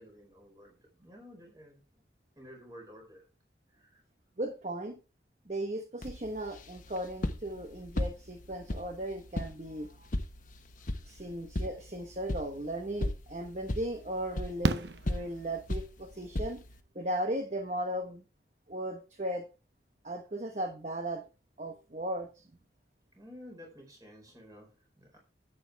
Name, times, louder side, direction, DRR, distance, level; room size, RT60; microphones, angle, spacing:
voice 1, 0.0-2.0 2.4-3.2 3.7-4.0 10.8-11.3 23.1-25.2, equal, 20° right, 4.8 m, -53 dB
voice 2, 4.4-5.0 5.5-10.1 11.1-16.6 16.9-18.2 18.7-19.4 20.0-21.3 21.6-22.4, right 1 dB, 40° right, 1.1 m, -36 dB
sound 1, 6.0-16.8, left 1 dB, 45° left, 1.1 m, -38 dB
Fireworks, 12.9-13.0 14.6-15.9 17.7-17.8 18.0-18.1, right 3 dB, 70° right, 0.7 m, -33 dB
11.0 x 8.8 x 3.5 m
head